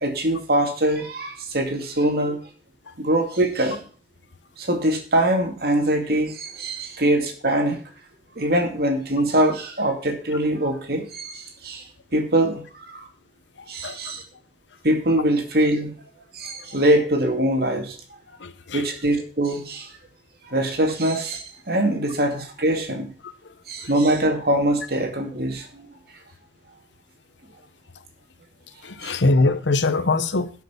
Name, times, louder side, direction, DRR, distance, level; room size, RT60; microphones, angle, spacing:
voice 1, 0.0-2.4 3.0-3.8 4.6-7.8 8.4-11.9 12.1-13.1 13.7-14.2 14.8-15.9 16.3-18.0 18.7-19.9 20.4-23.1 23.7-25.9 29.0-29.1, right 1 dB, 55° right, 2.3 m, -23 dB
voice 2, 13.8-14.1 18.4-18.8 28.8-30.5, left 2 dB, 80° left, 0.9 m, -22 dB
12.0 x 6.0 x 5.8 m
head